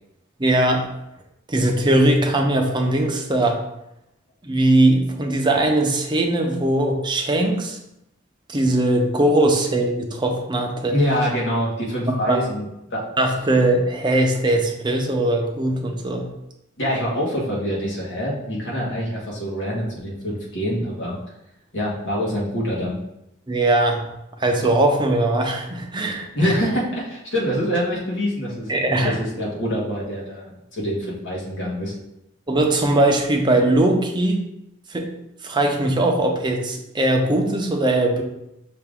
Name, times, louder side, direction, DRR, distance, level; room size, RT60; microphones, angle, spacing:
voice 1, 0.4-0.9 1.5-3.6 4.4-7.8 8.5-11.0 12.1-12.4 13.2-16.3 23.5-24.1 24.4-26.5 28.7-29.1 32.5-34.4 34.9-35.1 35.4-38.2, right 1 dB, 20° right, 2 dB, 0.6 m, -20 dB
voice 2, 10.9-13.0 16.8-21.2 21.7-23.0 26.3-28.8 29.0-31.9, equal, 65° left, -4 dB, 1.5 m, -25 dB
5.7 x 2.5 x 3.5 m, 0.83 s
head